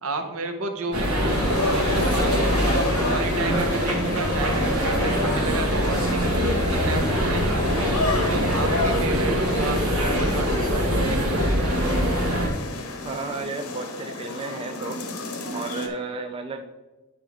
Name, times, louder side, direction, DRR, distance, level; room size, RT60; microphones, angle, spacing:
voice 1, 0.0-11.6, right 3 dB, 70° right, 6 dB, 0.9 m, -32 dB
sound 1, 0.9-12.5, equal, 85° right, 1.8 m, -23 dB
sound 2, 1.3-15.9, left 2 dB, 80° left, 1.0 m, -32 dB
voice 2, 13.0-15.0 15.5-16.7, right 3 dB, 25° right, 5 dB, 0.3 m, -33 dB
9.8 x 4.7 x 3.5 m, 1.1 s
head